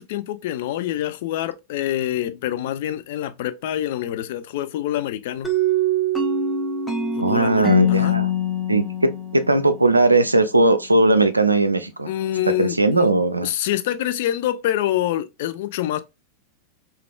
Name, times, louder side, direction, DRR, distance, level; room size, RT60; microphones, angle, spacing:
voice 1, 0.0-5.5 7.2-8.2 12.1-13.1 13.4-16.0, left 12 dB, 50° left, 0.3 m, -26 dB
sound 1, 5.4-10.1, left 1 dB, 5° left, 0.7 m, -23 dB
voice 2, 7.2-8.3 8.7-12.1 12.6-13.5, right 2 dB, 85° right, 0.3 m, -18 dB
3.2 x 2.3 x 2.3 m
figure-of-eight pair, 90°, 0 cm